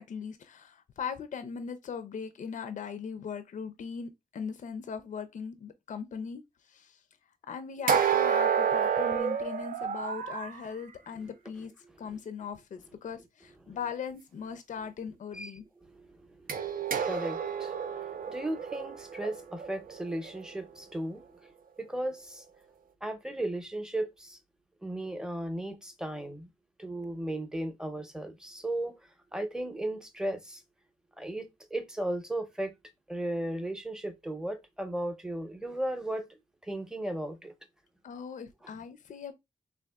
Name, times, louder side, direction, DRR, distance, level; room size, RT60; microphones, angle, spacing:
voice 1, 0.0-7.0 7.5-11.7 12.0-15.6 38.0-39.3, left 6 dB, 55° left, 0.4 m, -39 dB
sound 1, 7.9-10.6 16.5-20.5, right 7 dB, 70° right, 0.4 m, -29 dB
voice 2, 15.8-22.4 23.0-24.4 24.8-26.5 26.8-30.6 31.2-32.7 33.1-36.3 36.6-37.5 38.6-38.7, right 1 dB, 5° right, 0.7 m, -36 dB
3.4 x 2.4 x 2.3 m
cardioid pair, 75°, 15 cm